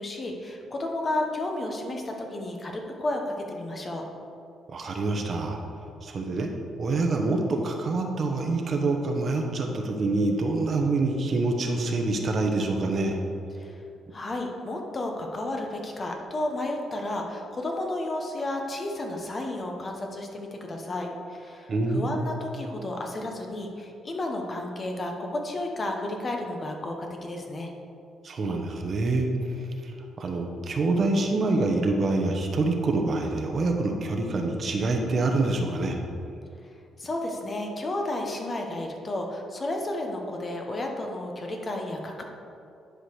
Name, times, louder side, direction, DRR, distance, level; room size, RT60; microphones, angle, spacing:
voice 1, 0.0-4.1 13.6-13.8 14.1-27.7 37.0-42.2, left 1 dB, 35° left, 2 dB, 1.2 m, -32 dB
voice 2, 4.7-5.6 6.0-6.5 6.8-13.2 21.7-22.2 28.2-29.9 30.2-36.0, right 2 dB, 45° right, 3 dB, 1.0 m, -26 dB
10.0 x 5.0 x 4.8 m, 2.6 s
cardioid pair, 90°, 0 cm